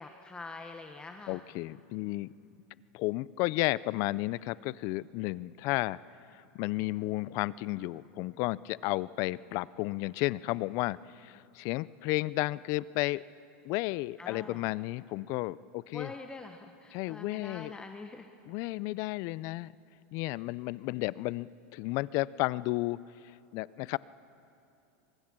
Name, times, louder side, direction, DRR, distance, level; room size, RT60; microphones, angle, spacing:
voice 1, 0.0-1.4 14.2-14.6 15.9-18.3, left 3 dB, 15° left, 5 dB, 0.9 m, -45 dB
voice 2, 1.3-2.3 2.9-6.0 6.3-13.2 13.6-16.1 16.9-17.7 18.5-19.7 20.1-23.0 23.5-24.0, left 20 dB, 50° left, 21 dB, 0.4 m, -33 dB
23.5 x 21.5 x 6.1 m, 2.7 s
supercardioid pair, 130°, 7 cm